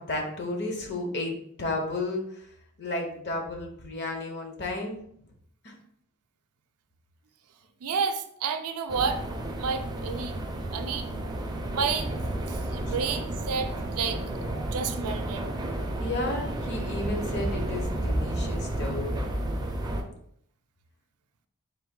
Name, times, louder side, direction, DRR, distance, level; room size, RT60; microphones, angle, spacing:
voice 1, 0.0-5.0 5.6-5.8 12.8-13.0 15.6-19.2, left 2 dB, 50° left, 2 dB, 0.8 m, -33 dB
voice 2, 7.8-9.2 9.6-11.1 11.7-12.2 12.5-14.2 14.5-15.4, right 5 dB, 85° right, 8 dB, 0.5 m, -31 dB
sound 1, 8.9-20.0, right 1 dB, 20° right, 0.4 m, -31 dB
3.9 x 2.6 x 3.7 m, 0.69 s
head